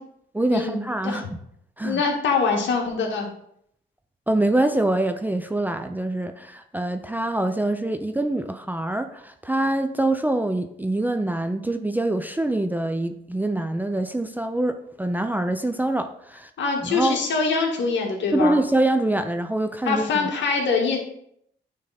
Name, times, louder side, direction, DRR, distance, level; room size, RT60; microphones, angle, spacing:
voice 1, 0.3-1.2 1.8-2.0 4.3-16.5 16.8-17.2 18.3-20.3, right 1 dB, 10° right, 0.5 m, -25 dB
voice 2, 1.8-3.3 16.6-18.5 19.9-21.0, left 4 dB, 65° left, 1.9 m, -23 dB
9.5 x 3.7 x 4.2 m
cardioid pair, 90°, 20 cm